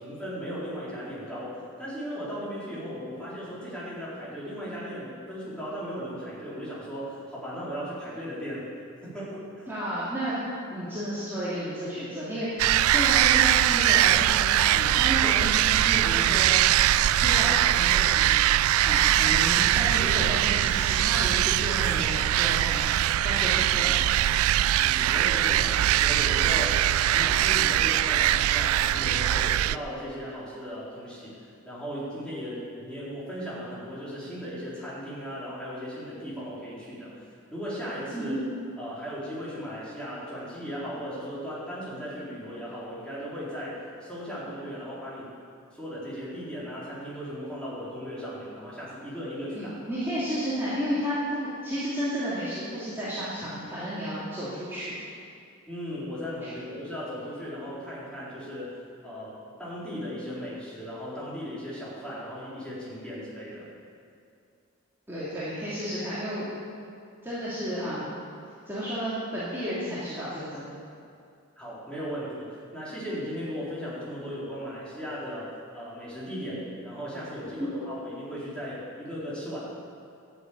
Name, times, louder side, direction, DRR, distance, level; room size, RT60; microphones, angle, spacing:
voice 1, 0.0-8.7 9.0-9.7 24.7-37.2 37.5-38.3 38.8-45.3 45.7-49.7 55.7-63.7 71.6-79.6, equal, 5° left, -9 dB, 4.1 m, -37 dB
voice 2, 9.7-10.3 10.7-16.6 17.2-18.5 18.8-22.8 23.2-24.0 38.1-38.4 49.5-54.9 56.4-56.5 63.1-63.2 65.1-66.5 67.2-68.2 68.7-70.7 77.6-77.7, equal, 10° right, -12 dB, 2.8 m, -32 dB
sound 1, 12.6-29.8, right 12 dB, 90° right, 0.3 m, -22 dB
12.5 x 8.1 x 8.8 m, 2.4 s
head